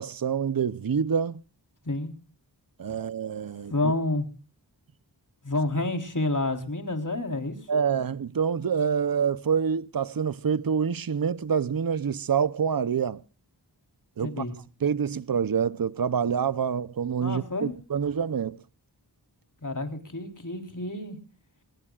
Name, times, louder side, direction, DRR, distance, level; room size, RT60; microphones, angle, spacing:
voice 1, 0.0-1.4 2.8-3.7 7.7-13.2 14.2-14.4 14.8-18.6, right 7 dB, 55° right, 0.8 m, -26 dB
voice 2, 3.7-4.3 5.4-7.6 14.2-14.5 17.2-17.7 19.6-21.2, left 2 dB, 45° left, 4.0 m, -29 dB
24.5 x 20.5 x 2.4 m
wide cardioid pair, 50°, 43 cm